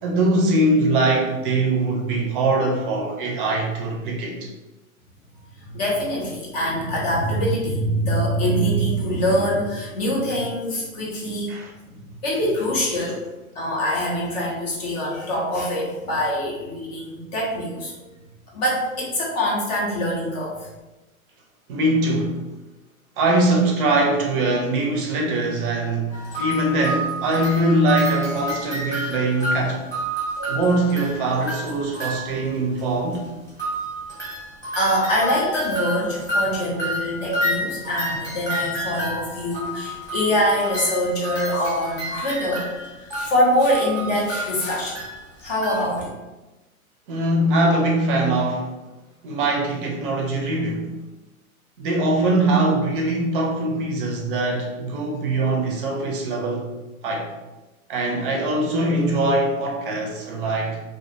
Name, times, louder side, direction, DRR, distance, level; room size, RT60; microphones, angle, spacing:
voice 1, 0.0-4.5 11.5-11.7 21.7-22.4 23.2-29.8 30.5-33.3 47.1-48.7 49.2-50.9 51.8-56.7 57.0-57.3 57.9-60.8, right 2 dB, 40° right, -1 dB, 0.5 m, -22 dB
voice 2, 5.6-11.6 11.9-13.2 13.6-18.1 18.5-20.7 34.7-42.7 43.0-45.0 45.4-46.2, equal, 30° left, -4 dB, 0.4 m, -24 dB
sound 1, 26.1-32.5 32.8-32.9 33.1-33.2 33.5-45.9, right 1 dB, 5° left, 0.9 m, -30 dB
2.4 x 2.1 x 2.5 m, 1.1 s
hypercardioid pair, 115°, 43 cm